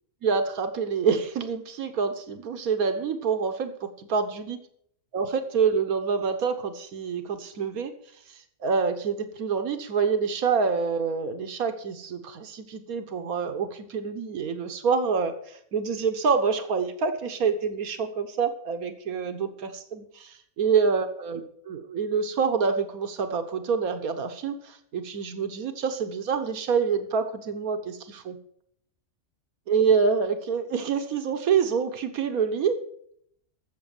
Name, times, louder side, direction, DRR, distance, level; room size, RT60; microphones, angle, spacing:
voice 1, 0.2-4.6 5.1-8.0 8.3-28.4 29.7-32.8, right 5 dB, 90° right, 8 dB, 1.6 m, -27 dB
13.5 x 7.5 x 7.1 m, 0.67 s
omnidirectional pair, 1.5 m